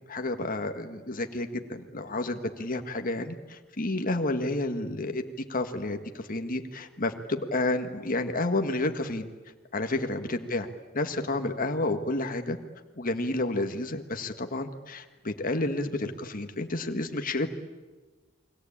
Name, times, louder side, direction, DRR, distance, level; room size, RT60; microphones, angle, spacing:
voice 1, 0.1-5.2 5.5-9.3 9.7-10.7 10.9-12.6 13.0-17.5, left 2 dB, 45° left, 6 dB, 1.7 m, -30 dB
29.5 x 22.0 x 8.7 m, 1.3 s
head